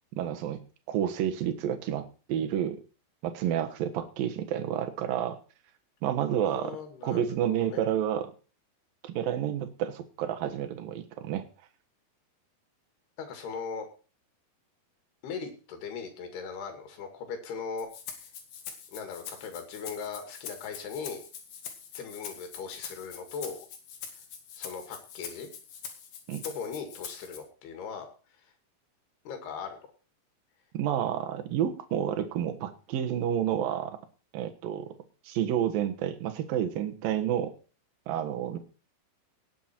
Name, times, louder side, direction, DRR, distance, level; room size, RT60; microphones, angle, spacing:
voice 1, 0.2-2.8 3.2-5.4 6.0-6.8 7.0-8.3 9.0-11.4 26.3-26.4 30.7-34.0 34.3-34.9 35.2-37.5 38.1-38.6, right 10 dB, 70° right, 7 dB, 3.0 m, -30 dB
voice 2, 6.4-7.8 13.2-13.9 15.2-17.9 18.9-21.2 22.0-23.6 24.6-25.5 26.4-28.1 29.3-29.8, left 5 dB, 85° left, 6 dB, 4.3 m, -38 dB
Rattle (instrument), 17.8-27.4, left 7 dB, 65° left, 3.6 m, -44 dB
18.5 x 8.2 x 4.5 m, 0.36 s
omnidirectional pair, 4.5 m